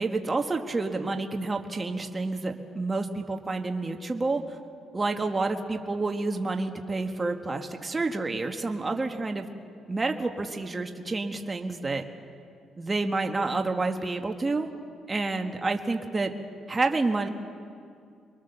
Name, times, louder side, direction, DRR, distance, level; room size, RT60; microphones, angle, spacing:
voice 1, 0.0-4.4 4.9-9.5 9.9-12.0 12.8-14.7 15.1-16.3 16.7-17.3, right 3 dB, 25° right, 4 dB, 1.5 m, -29 dB
25.0 x 22.5 x 6.9 m, 2.3 s
cardioid pair, 90°, 0 cm